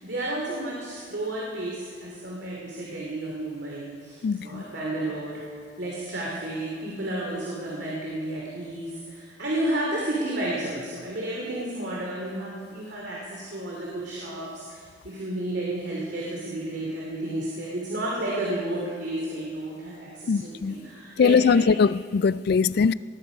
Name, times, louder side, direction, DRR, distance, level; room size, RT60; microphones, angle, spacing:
voice 1, 0.0-22.1, right 1 dB, 60° right, 2.6 m, -32 dB
voice 2, 4.2-4.6 20.3-20.7 21.2-22.9, left 5 dB, 55° left, 0.3 m, -21 dB
19.0 x 14.5 x 5.0 m
head